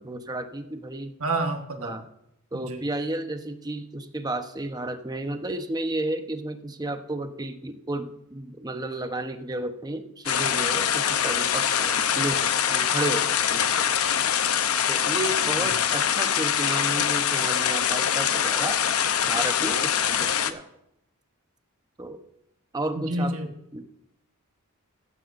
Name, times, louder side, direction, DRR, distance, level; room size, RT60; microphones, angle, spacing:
voice 1, 0.0-1.2 1.8-2.0 2.5-13.7 14.2-14.3 14.9-18.8 19.3-20.6 22.0-22.2 22.7-23.4 23.7-23.8, right 2 dB, 20° right, 7 dB, 1.0 m, -32 dB
voice 2, 1.2-2.0 2.5-2.8 15.6-15.7 22.9-23.5, right 2 dB, 75° right, 4 dB, 1.4 m, -29 dB
sound 1, 10.3-20.5, left 8 dB, 90° left, 0.8 m, -24 dB
15.0 x 15.0 x 2.6 m, 0.81 s
head